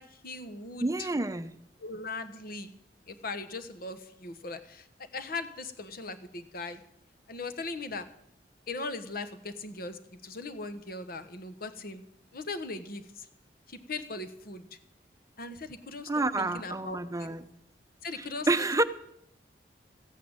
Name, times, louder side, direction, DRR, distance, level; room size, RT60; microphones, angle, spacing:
voice 1, 0.0-1.1 1.8-2.7 3.1-6.8 7.3-8.1 8.7-12.0 12.3-13.3 13.7-14.7 15.4-17.3 18.0-18.5, left 3 dB, 55° left, 11 dB, 1.2 m, -39 dB
voice 2, 0.8-1.5 16.1-17.5 18.2-18.8, right 2 dB, 20° right, 12 dB, 0.7 m, -29 dB
14.5 x 8.6 x 8.7 m, 0.74 s
head